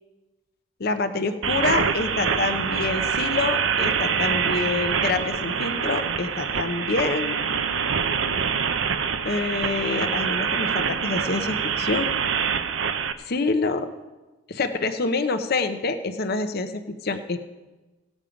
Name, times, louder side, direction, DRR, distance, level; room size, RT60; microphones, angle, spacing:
voice 1, 0.8-7.5 9.2-12.1 13.3-13.8 14.5-17.4, left 3 dB, 55° left, 8 dB, 0.7 m, -26 dB
sound 1, 1.4-13.1, right 6 dB, 85° right, 0.6 m, -25 dB
17.5 x 7.3 x 5.1 m, 1.2 s
head